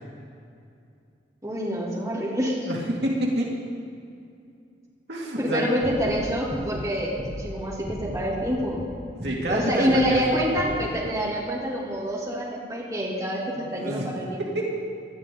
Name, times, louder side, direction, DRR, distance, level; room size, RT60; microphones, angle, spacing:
voice 1, 1.4-2.7 5.4-8.8 9.5-14.4, equal, 20° right, -6 dB, 2.9 m, -27 dB
voice 2, 2.7-3.5 5.1-5.6 9.1-10.2 13.7-14.1 14.5-14.6, right 1 dB, 65° right, -2 dB, 2.3 m, -27 dB
sound 1, 5.8-8.2 8.5-8.9 9.2-9.6 9.8-10.2 10.5-10.9, equal, 35° right, 1.7 m, -36 dB
19.0 x 12.0 x 3.9 m, 2.4 s
head